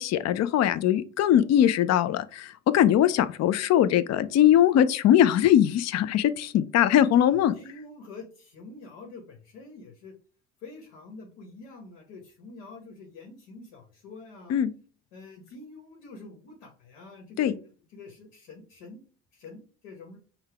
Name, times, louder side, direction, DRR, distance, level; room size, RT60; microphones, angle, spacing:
voice 1, 0.0-7.5 14.5-14.7 17.4-17.5, left 11 dB, 45° left, 14 dB, 0.5 m, -21 dB
voice 2, 7.2-10.1 10.6-14.6 15.1-19.0 19.3-20.2, left 3 dB, 80° left, 2 dB, 1.1 m, -46 dB
5.6 x 2.2 x 3.4 m, 0.38 s
hypercardioid pair, 55°, 37 cm